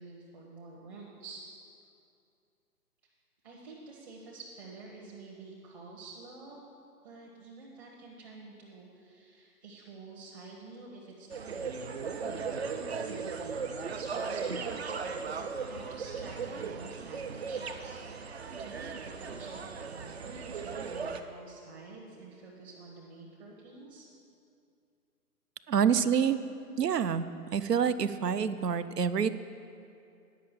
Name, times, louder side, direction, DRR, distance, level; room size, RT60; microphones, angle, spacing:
voice 1, 0.0-1.4 3.4-6.6 7.0-11.7 12.6-24.1, right 3 dB, 30° right, -4 dB, 1.2 m, -49 dB
sound 1, 11.3-21.2, right 5 dB, 45° right, 0.5 m, -37 dB
voice 2, 25.7-26.4 26.8-27.3 27.5-29.3, right 7 dB, 80° right, 14 dB, 0.7 m, -27 dB
9.8 x 5.7 x 7.5 m, 2.5 s
figure-of-eight pair, 140°, 47 cm